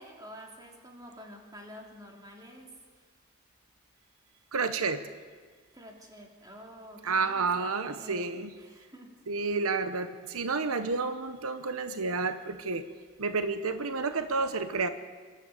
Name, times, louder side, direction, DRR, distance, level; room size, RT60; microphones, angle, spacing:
voice 1, 0.0-3.0 5.7-9.2, equal, 15° right, 1 dB, 2.9 m, -49 dB
voice 2, 4.5-5.0 7.0-8.5 9.3-12.9 13.2-14.9, right 4 dB, 80° right, 10 dB, 1.0 m, -30 dB
26.0 x 12.5 x 8.4 m, 1.5 s
head